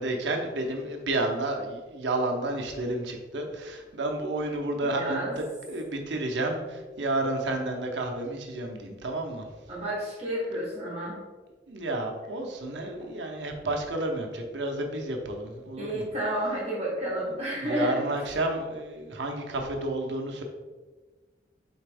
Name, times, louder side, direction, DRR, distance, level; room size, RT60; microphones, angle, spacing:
voice 1, 0.0-9.5 11.7-16.0 17.2-20.4, right 2 dB, 85° right, 3 dB, 0.7 m, -31 dB
voice 2, 4.9-5.3 9.7-11.2 13.0-13.1 15.8-18.0, equal, 35° right, -7 dB, 1.1 m, -31 dB
4.3 x 3.3 x 3.4 m, 1.3 s
head